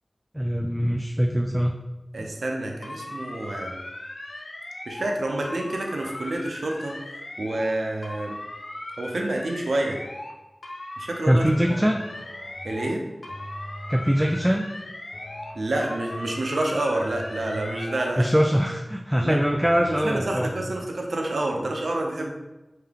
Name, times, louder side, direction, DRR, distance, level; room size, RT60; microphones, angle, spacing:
voice 1, 0.3-1.8 2.2-2.3 11.3-12.0 13.9-14.7 18.2-20.5, equal, 5° right, 1 dB, 0.3 m, -22 dB
voice 2, 2.1-3.8 4.9-7.0 7.4-8.4 9.0-10.0 11.0-11.4 11.7-11.9 12.6-13.0 15.5-18.3 19.2-19.4 19.9-22.3, right 1 dB, 85° right, 1 dB, 0.5 m, -28 dB
sound 1, 2.8-5.1 5.4-7.7 8.0-10.3 10.6-13.0 13.2-15.6 15.8-18.2, left 1 dB, 85° left, 0.5 m, -38 dB
sound 2, 11.4-12.7 13.3-14.6 15.1-16.6 17.1-19.0 19.4-20.8, equal, 50° left, 0.8 m, -42 dB
3.4 x 2.8 x 3.5 m, 1.0 s
cardioid pair, 40°, 0 cm